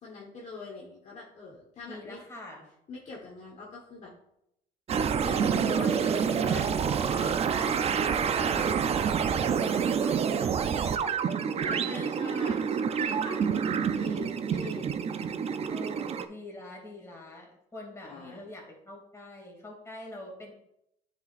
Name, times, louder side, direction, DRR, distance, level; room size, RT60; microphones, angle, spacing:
voice 1, 0.0-2.2 2.9-4.1 5.2-8.9 11.5-14.9 18.0-18.5, left 3 dB, 45° left, -3 dB, 1.4 m, -43 dB
voice 2, 1.9-2.7 5.4-5.9 6.2-7.6 7.9-8.7 9.6-11.4 11.6-12.1 13.3-13.8 15.7-20.5, left 1 dB, 15° left, -2 dB, 2.5 m, -45 dB
sound 1, 4.9-16.3, right 7 dB, 40° right, 0.4 m, -28 dB
9.4 x 5.0 x 2.5 m, 0.79 s
cardioid pair, 110°, 17 cm